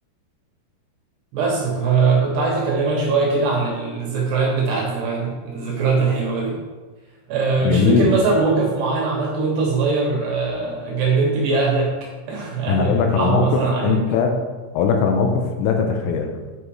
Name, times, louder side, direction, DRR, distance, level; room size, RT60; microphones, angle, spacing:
voice 1, 1.3-6.6 7.3-12.0 12.3-14.0, right 4 dB, 65° right, -2 dB, 3.0 m, -21 dB
voice 2, 7.6-8.1 12.7-13.5 13.8-14.3 14.7-16.3, left 6 dB, 85° left, 3 dB, 3.4 m, -19 dB
8.7 x 5.0 x 4.8 m, 1.3 s
omnidirectional pair, 5.9 m